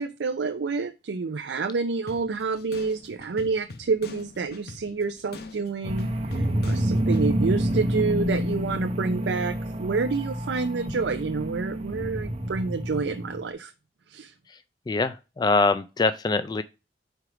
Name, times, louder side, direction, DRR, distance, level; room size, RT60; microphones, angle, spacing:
voice 1, 0.0-13.7 14.1-14.3, right 4 dB, 80° right, 0.5 m, -28 dB
sound 1, 2.1-7.3, left 3 dB, 60° left, 0.8 m, -44 dB
sound 2, 5.8-13.5, equal, 35° right, 0.9 m, -28 dB
voice 2, 14.9-16.6, left 3 dB, 25° left, 0.3 m, -23 dB
5.0 x 4.6 x 4.7 m
head